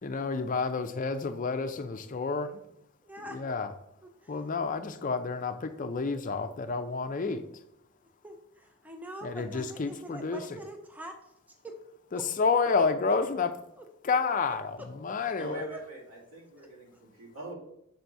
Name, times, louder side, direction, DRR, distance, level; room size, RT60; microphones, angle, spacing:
voice 1, 0.0-2.6 3.3-3.7 4.3-7.4 9.2-10.6 12.1-13.5 14.0-15.6, left 4 dB, 40° left, 9 dB, 0.5 m, -30 dB
voice 2, 3.0-3.6 4.2-4.3 8.2-11.2 11.6-11.8 12.1-12.2 12.7-12.8 13.8-13.9 14.1-14.2 15.7-15.8, right 1 dB, 10° right, 4 dB, 0.5 m, -43 dB
voice 3, 15.4-17.5, right 1 dB, 80° right, -4 dB, 2.6 m, -42 dB
6.8 x 4.0 x 4.6 m, 0.76 s
head